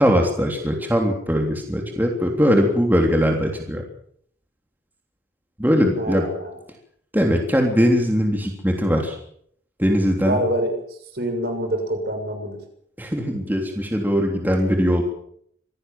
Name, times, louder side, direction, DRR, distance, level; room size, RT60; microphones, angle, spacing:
voice 1, 0.0-3.8 5.6-6.3 7.1-9.2 9.8-10.4 13.0-15.0, equal, 10° right, 2 dB, 3.3 m, -20 dB
voice 2, 6.0-6.6 10.2-10.7 11.1-12.6, right 1 dB, 55° right, 5 dB, 6.9 m, -25 dB
25.5 x 17.5 x 7.5 m, 0.66 s
head